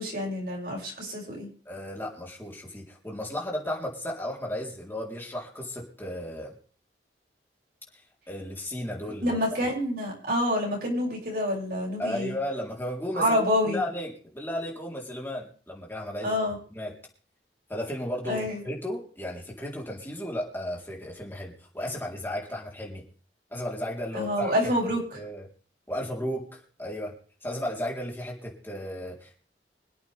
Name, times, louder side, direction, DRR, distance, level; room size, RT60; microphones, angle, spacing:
voice 1, 0.0-1.5 9.2-12.3 13.1-13.8 16.2-16.6 18.3-18.6 24.1-25.2, left 1 dB, 55° right, -2 dB, 6.7 m, -27 dB
voice 2, 1.7-6.5 7.9-9.7 12.0-16.4 16.7-16.9 17.7-23.0 23.5-24.5 25.1-25.5 25.9-27.1 27.4-29.4, left 1 dB, 10° left, -2 dB, 3.8 m, -34 dB
26.0 x 8.7 x 3.5 m, 0.42 s
head